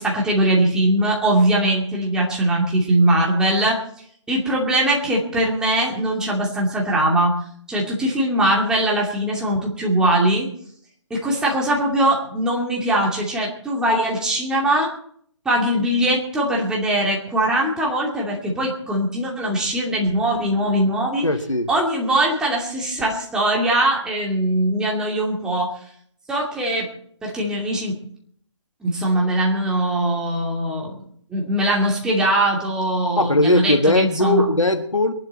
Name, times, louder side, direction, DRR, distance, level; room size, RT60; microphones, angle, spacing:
voice 1, 0.0-3.8 4.3-7.4 7.7-10.5 11.1-14.9 15.4-21.2 21.7-25.7 26.3-26.9 27.2-27.9 28.8-31.0 31.3-34.4, right 1 dB, 5° right, -3 dB, 2.5 m, -21 dB
voice 2, 21.2-21.7 33.2-35.1, left 2 dB, 85° left, 7 dB, 1.7 m, -19 dB
23.0 x 11.5 x 4.3 m, 0.62 s
figure-of-eight pair, 145°, 16 cm